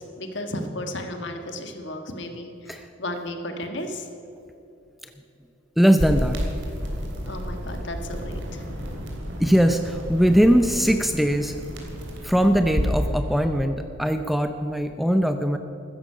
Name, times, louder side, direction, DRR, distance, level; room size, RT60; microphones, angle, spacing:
voice 1, 0.0-4.1 7.3-8.8, left 1 dB, 55° left, 5 dB, 1.5 m, -34 dB
voice 2, 5.8-6.4 9.4-11.6 12.2-15.6, equal, ahead, 7 dB, 0.5 m, -20 dB
sound 1, 6.0-13.0, equal, 60° right, 3.0 m, -31 dB
sound 2, 8.0-13.5, equal, 75° right, 1.7 m, -42 dB
15.0 x 13.5 x 5.6 m, 2.9 s
head